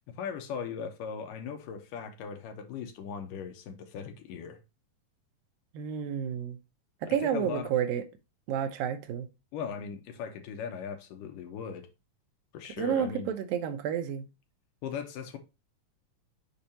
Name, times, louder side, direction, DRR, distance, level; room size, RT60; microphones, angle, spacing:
voice 1, 0.2-4.6 7.1-7.7 9.5-11.9 12.5-13.3 14.8-15.4, left 6 dB, 75° left, 2.6 m, -38 dB
voice 2, 5.7-6.6 7.0-8.0 8.5-9.3 12.8-14.3, right 9 dB, 85° right, 2.7 m, -30 dB
6.8 x 5.2 x 2.8 m
omnidirectional pair, 3.9 m